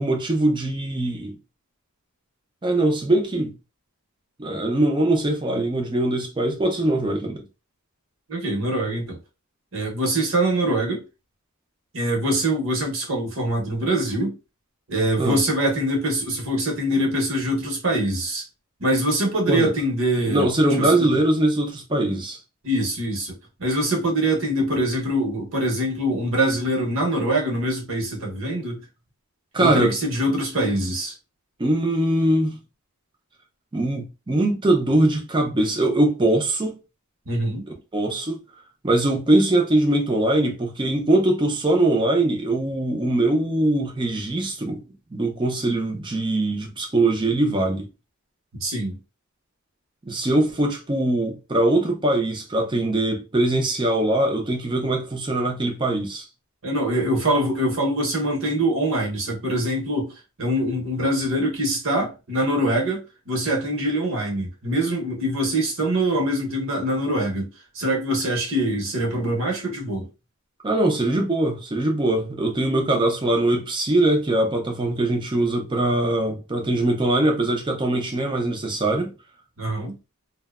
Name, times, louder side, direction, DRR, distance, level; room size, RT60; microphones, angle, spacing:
voice 1, 0.0-1.4 2.6-3.5 4.4-7.5 15.2-15.4 19.5-19.7 20.3-22.4 29.5-30.0 31.6-32.6 33.7-36.8 37.9-38.4 38.8-44.8 45.1-47.9 50.0-56.3 70.6-79.1, right 1 dB, 20° right, 0.5 m, -22 dB
voice 2, 8.3-9.2 9.7-11.0 11.9-14.4 14.9-18.4 18.8-20.5 20.8-21.1 22.6-28.8 29.6-31.1 37.3-37.7 48.6-49.0 56.6-60.1 60.4-70.1 79.6-80.0, right 1 dB, 60° right, 0.9 m, -24 dB
2.6 x 2.1 x 2.3 m
head